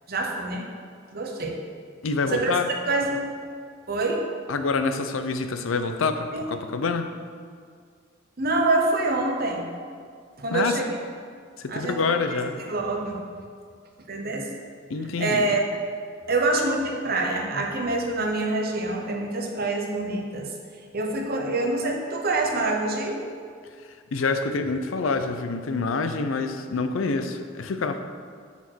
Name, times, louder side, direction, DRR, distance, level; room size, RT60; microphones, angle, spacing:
voice 1, 0.1-0.7 1.1-1.6 2.2-2.5 2.8-3.3 3.9-4.2 6.3-6.4 8.4-9.7 10.4-11.0 11.7-12.4 12.7-13.2 14.1-14.5 15.2-15.6 16.3-20.5 20.9-23.2, right 2 dB, 50° right, 1 dB, 0.9 m, -26 dB
voice 2, 2.0-2.7 4.5-7.1 10.5-10.8 11.6-12.6 14.9-15.5 23.8-28.0, left 4 dB, 85° left, 8 dB, 0.5 m, -27 dB
6.9 x 4.3 x 6.2 m, 2.1 s
head